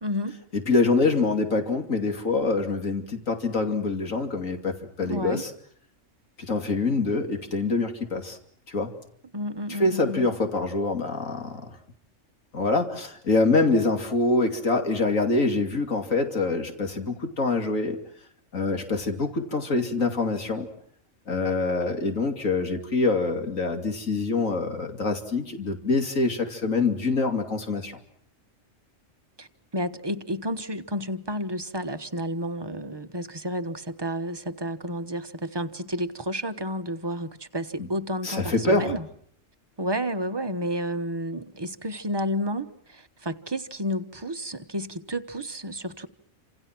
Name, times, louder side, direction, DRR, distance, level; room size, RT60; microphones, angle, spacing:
voice 1, 0.0-0.4 5.0-5.5 9.3-10.3 29.4-29.5 29.7-39.1 39.8-46.1, equal, 20° right, 9 dB, 1.1 m, -31 dB
voice 2, 0.5-5.5 6.4-8.4 8.7-8.9 9.7-11.8 12.5-18.0 18.5-20.7 21.3-28.0 37.8-37.9 38.2-38.9, left 3 dB, 80° left, 5 dB, 3.1 m, -25 dB
29.0 x 27.0 x 6.1 m, 0.65 s
omnidirectional pair, 1.4 m